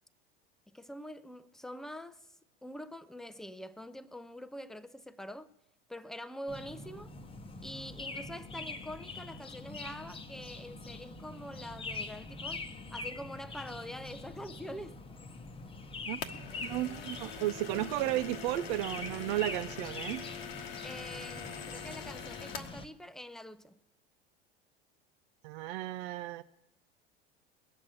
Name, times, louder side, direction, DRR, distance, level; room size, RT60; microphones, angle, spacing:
voice 1, 0.7-2.2 2.6-5.5 5.9-7.1 7.6-12.7 12.9-15.0 20.8-23.8, equal, ahead, 0.6 m, -45 dB
sound 1, 6.5-22.9, left 3 dB, 20° left, 1.0 m, -44 dB
sound 2, 16.2-22.8, left 7 dB, 70° left, 1.2 m, -44 dB
voice 2, 16.6-20.3 25.4-26.4, right 16 dB, 55° right, 0.5 m, -34 dB
20.5 x 7.3 x 8.9 m
figure-of-eight pair, 75°, 30 cm